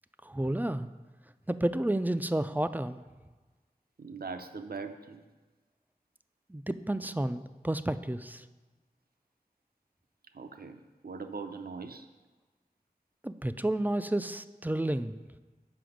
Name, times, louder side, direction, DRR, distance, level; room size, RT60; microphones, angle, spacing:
voice 1, 0.2-0.9 1.5-3.0 6.5-8.5 13.2-15.2, right 1 dB, 10° right, 11 dB, 0.3 m, -31 dB
voice 2, 4.0-5.2 10.3-12.1, right 4 dB, 75° right, 7 dB, 0.6 m, -41 dB
7.8 x 5.8 x 5.0 m, 1.3 s
wide cardioid pair, 55°, 16 cm